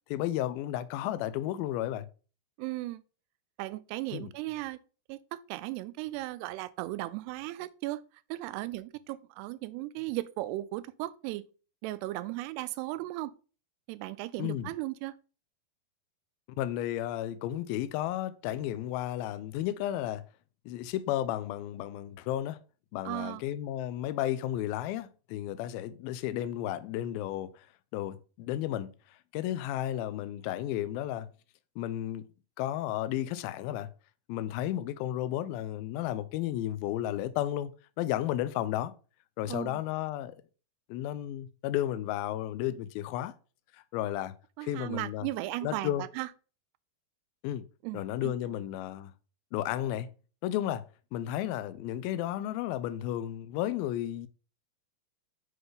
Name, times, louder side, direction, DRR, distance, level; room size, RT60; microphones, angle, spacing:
voice 1, 0.1-2.1 4.1-4.3 14.4-14.7 16.6-20.2 20.7-22.6 22.9-27.7 27.9-31.3 31.8-32.3 32.6-33.9 34.3-38.9 39.4-40.4 40.9-43.3 43.7-44.4 44.6-45.3 45.6-46.1 47.4-47.6 47.9-49.1 49.5-50.1 50.4-50.8 51.1-54.3, left 12 dB, 85° left, 2.1 m, -33 dB
voice 2, 2.6-3.0 3.6-4.8 5.1-8.0 8.3-11.5 11.8-13.3 13.9-15.1 23.1-23.4 39.5-39.8 44.6-46.3 47.8-48.3, right 17 dB, 85° right, 2.6 m, -36 dB
7.9 x 5.2 x 3.9 m
omnidirectional pair, 4.8 m